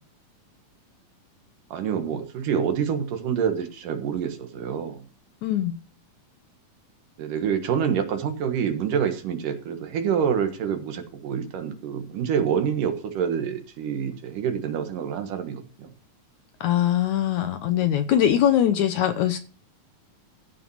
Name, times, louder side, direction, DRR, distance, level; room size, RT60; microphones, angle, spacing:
voice 1, 1.7-5.1 7.2-15.9, right 7 dB, 70° right, 7 dB, 2.9 m, -27 dB
voice 2, 5.4-5.8 16.6-19.4, left 10 dB, 70° left, 9 dB, 2.1 m, -22 dB
14.5 x 5.8 x 6.3 m, 0.38 s
omnidirectional pair, 4.0 m